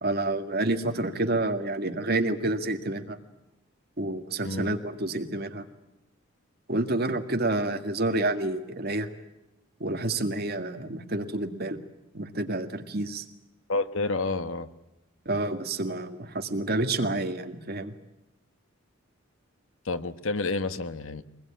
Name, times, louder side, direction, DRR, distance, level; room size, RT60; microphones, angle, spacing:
voice 1, 0.0-3.2 4.0-5.7 6.7-9.1 9.8-11.8 12.1-13.3 15.3-17.9, right 2 dB, 50° right, 6 dB, 1.9 m, -29 dB
voice 2, 13.7-14.7 19.8-21.2, left 3 dB, 75° left, 11 dB, 1.2 m, -29 dB
24.0 x 20.5 x 8.8 m, 0.96 s
head